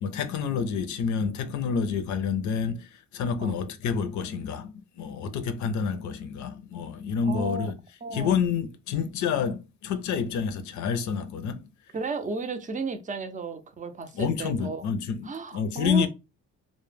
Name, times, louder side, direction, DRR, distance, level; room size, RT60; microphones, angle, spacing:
voice 1, 0.0-7.8 8.1-11.6 14.1-16.1, left 6 dB, 70° left, 0.5 m, -28 dB
voice 2, 7.3-7.7 8.0-8.4 11.9-14.8 15.3-16.1, right 4 dB, 25° right, 0.5 m, -33 dB
2.2 x 2.1 x 3.2 m
cardioid pair, 90°, 30 cm